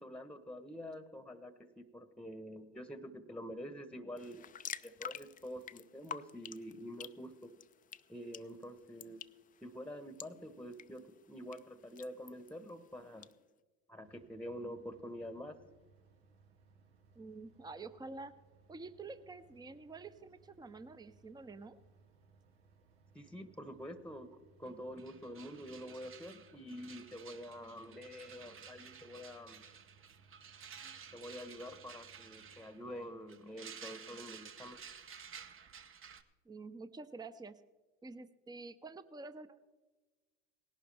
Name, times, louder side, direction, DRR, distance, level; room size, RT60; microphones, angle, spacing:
voice 1, 0.0-4.4 4.8-7.5 8.1-9.2 9.6-13.3 13.9-15.6 23.1-29.6 31.1-34.8, equal, 5° left, 11 dB, 1.1 m, -47 dB
sound 1, 4.2-13.3, left 8 dB, 25° left, 0.4 m, -50 dB
sound 2, 14.0-33.1, right 4 dB, 85° right, 1.4 m, -66 dB
voice 2, 17.1-18.3 18.7-21.8 36.5-37.5 38.0-39.6, right 3 dB, 15° right, 12 dB, 0.7 m, -48 dB
sound 3, 24.7-24.8 25.0-36.2, right 7 dB, 40° right, 1.0 m, -53 dB
18.0 x 11.5 x 3.4 m, 1.2 s
hypercardioid pair, 70°, 31 cm